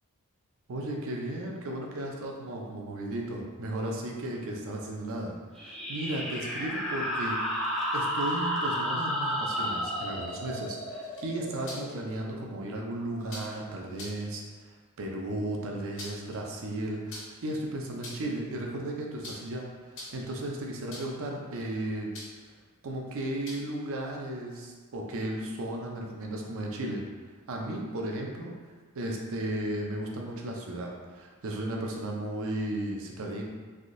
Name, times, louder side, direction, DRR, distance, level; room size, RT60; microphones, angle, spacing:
voice 1, 0.7-7.6 7.9-14.4 15.0-22.1 22.8-27.0 27.5-28.5 28.9-33.5, right 1 dB, 65° right, 0 dB, 0.5 m, -35 dB
sound 1, 5.5-12.8, equal, ahead, 0.5 m, -32 dB
sound 2, 11.0-11.9 13.3-13.6 13.9-14.2 15.7-16.4 17.1-17.5 17.9-18.4 19.2-19.5 19.9-20.3 20.9-21.3 22.1-22.5 23.4-23.8, left 1 dB, 55° left, 0.7 m, -43 dB
3.4 x 2.6 x 2.5 m, 1.4 s
head